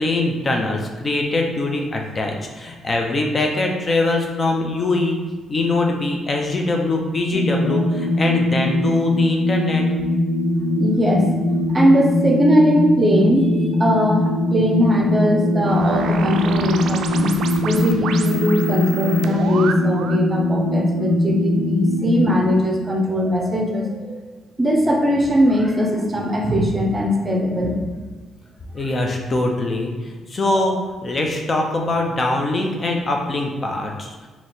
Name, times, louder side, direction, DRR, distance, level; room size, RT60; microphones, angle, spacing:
voice 1, 0.0-5.2 5.5-9.8 28.7-34.3, left 2 dB, 35° left, 1 dB, 0.6 m, -22 dB
sound 1, 7.3-22.3, left 1 dB, 50° left, 1.4 m, -21 dB
voice 2, 10.7-11.3 11.7-17.3 17.6-24.2 24.6-27.9, equal, 25° right, 1 dB, 0.7 m, -20 dB
sound 2, 15.7-20.3, right 5 dB, 75° right, 0.3 m, -30 dB
3.1 x 2.9 x 4.3 m, 1.3 s
cardioid pair, 90°, 0 cm